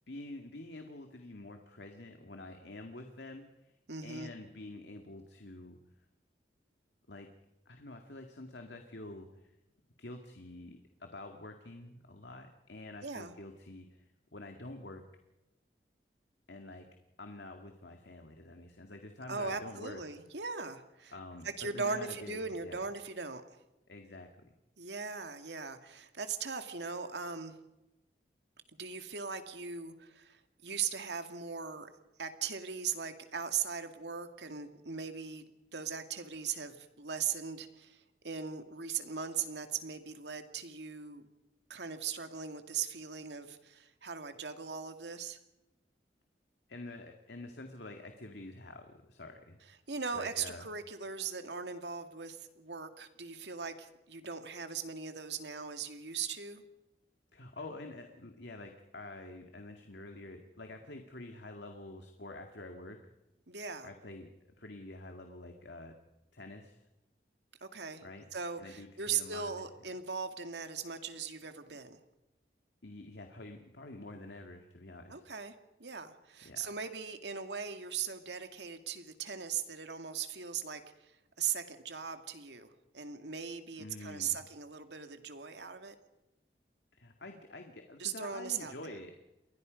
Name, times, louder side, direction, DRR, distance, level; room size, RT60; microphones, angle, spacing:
voice 1, 0.1-3.7 4.0-5.8 7.1-7.3 7.7-9.5 10.0-14.0 14.3-15.0 16.5-16.9 17.2-20.0 21.1-22.9 23.9-24.5 46.7-49.6 50.1-50.6 57.3-63.0 63.8-64.3 64.6-66.0 66.3-66.8 68.0-68.2 68.6-69.7 72.8-75.2 76.4-76.7 83.8-84.4 86.9-89.2, left 2 dB, 80° left, 4 dB, 2.1 m, -47 dB
voice 2, 3.9-4.3 13.0-13.4 19.3-21.1 21.4-23.6 24.8-27.6 28.8-31.9 32.2-35.4 35.7-41.2 41.7-45.4 49.9-56.6 63.5-63.9 67.6-68.0 68.3-72.0 75.1-86.0 88.0-89.0, right 6 dB, 80° right, 7 dB, 2.3 m, -39 dB
29.5 x 23.0 x 5.2 m, 0.95 s
head